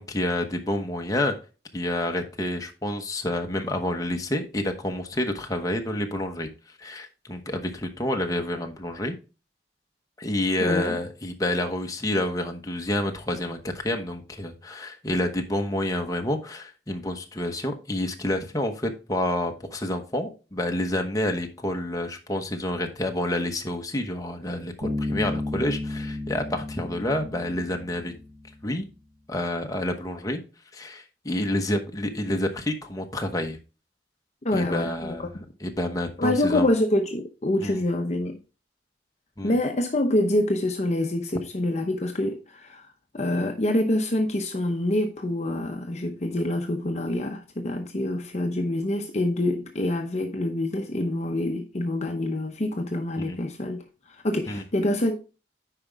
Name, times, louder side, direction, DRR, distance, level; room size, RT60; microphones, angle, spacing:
voice 1, 0.0-1.3 1.7-6.5 6.8-9.2 10.2-28.1 28.6-28.8 29.3-30.4 30.7-33.6 34.5-35.3 35.6-36.7 37.6-37.8 39.4-39.6 53.2-53.4 54.5-54.6, left 1 dB, 20° left, 1.0 m, -28 dB
voice 2, 10.6-11.0 34.4-35.1 36.2-38.4 39.4-42.9 43.1-55.2, left 1 dB, 40° left, 0.8 m, -26 dB
Bass guitar, 24.8-28.5, left 2 dB, 85° right, 3.5 m, -32 dB
9.5 x 5.0 x 3.5 m
head